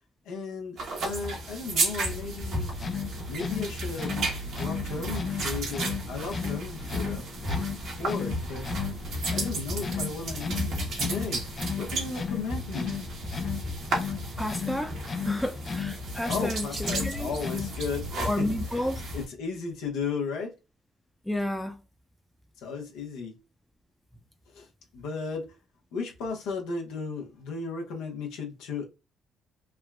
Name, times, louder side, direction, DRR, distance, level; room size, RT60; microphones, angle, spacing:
voice 1, 0.2-2.7 3.3-4.2 4.5-8.7 9.3-11.4 11.8-13.0 16.2-18.9 19.1-20.5 22.6-23.4 24.5-24.7 24.9-25.5 25.9-28.9, left 4 dB, 80° left, 0.9 m, -35 dB
sound 1, 0.8-19.2, right 1 dB, 70° right, 1.2 m, -33 dB
sound 2, 2.7-18.0, left 6 dB, 40° left, 0.4 m, -35 dB
voice 2, 14.4-15.0 15.2-16.7 17.0-17.3 18.3-19.0 21.3-21.8, left 1 dB, 5° left, 0.6 m, -31 dB
3.5 x 2.3 x 2.2 m
hypercardioid pair, 55°, 0 cm